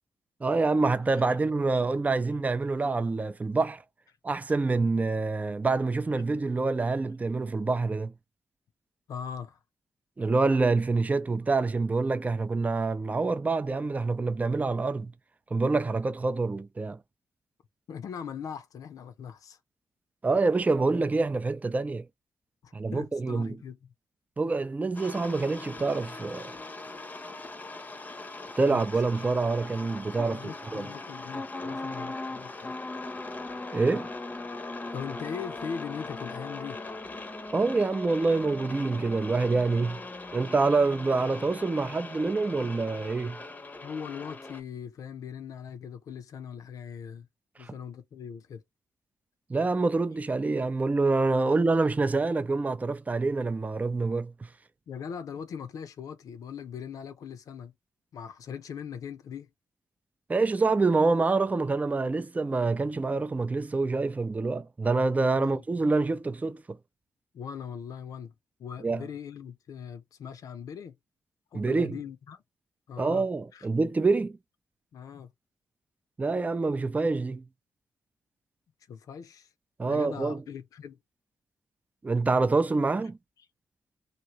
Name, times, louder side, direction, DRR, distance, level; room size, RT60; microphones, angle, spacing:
voice 1, 0.4-3.8 4.2-8.1 10.2-15.1 15.5-17.0 20.2-22.0 22.7-23.6 24.4-26.5 28.6-30.9 33.7-34.1 37.5-40.0 40.3-43.4 47.6-47.7 49.5-54.3 60.3-66.8 68.8-69.0 71.5-72.0 73.0-74.4 76.2-77.4 79.8-80.4 82.0-83.2, right 3 dB, 25° right, 0.4 m, -26 dB
voice 2, 9.1-9.6 17.9-19.6 22.6-23.9 28.6-28.8 30.3-32.7 34.9-36.8 43.8-47.3 47.6-48.6 51.5-51.6 54.9-57.7 58.1-59.5 65.3-65.6 67.3-68.3 68.6-71.0 71.5-72.4 72.9-73.3 73.5-73.7 74.9-75.3 78.9-79.5 79.9-81.0, left 7 dB, 70° left, 0.6 m, -40 dB
toy truck single, 24.9-44.6, left 2 dB, 25° left, 0.7 m, -40 dB
2.9 x 2.6 x 2.8 m
supercardioid pair, 55°, 6 cm